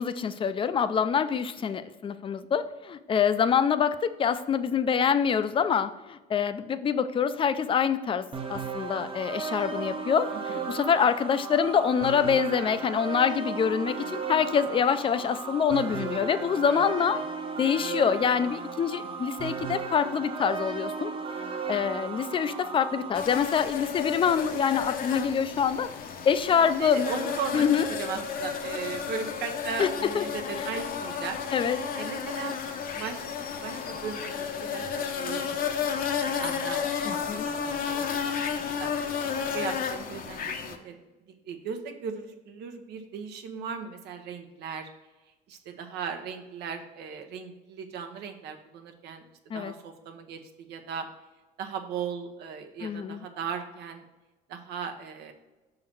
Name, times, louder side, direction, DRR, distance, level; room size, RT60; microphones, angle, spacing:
voice 1, 0.0-8.2 8.5-17.2 17.6-21.1 21.7-25.9 26.2-27.1 27.5-27.9 29.8-29.9 30.1-30.2 31.5-31.8 37.1-37.5 49.5-49.7 52.8-53.2, left 7 dB, 30° left, 11 dB, 0.4 m, -25 dB
sound 1, 8.3-23.1, right 5 dB, 30° right, 0.8 m, -35 dB
voice 2, 10.3-10.8 16.7-16.9 17.9-18.0 26.6-27.7 28.0-35.6 36.4-38.9 39.5-41.0 41.4-44.9 45.5-49.2 49.5-51.1 51.6-54.0 54.5-55.3, right 6 dB, 80° right, 6 dB, 0.9 m, -37 dB
sound 2, 23.1-40.8, left 7 dB, 55° left, 0.8 m, -32 dB
6.1 x 3.8 x 6.0 m, 1.1 s
cardioid pair, 110°, 17 cm